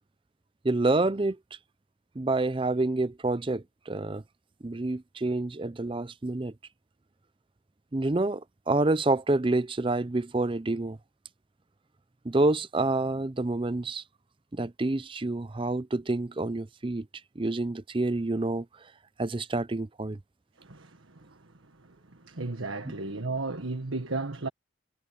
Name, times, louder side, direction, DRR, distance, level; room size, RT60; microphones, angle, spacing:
voice 1, 0.6-1.4 2.2-4.2 4.6-6.5 7.9-11.0 12.2-14.0 14.5-17.1 17.4-18.9 19.2-20.2, right 2 dB, 25° right, 0.5 m, -28 dB
voice 2, 20.6-21.5 21.8-24.5, right 3 dB, 80° right, 1.5 m, -35 dB
head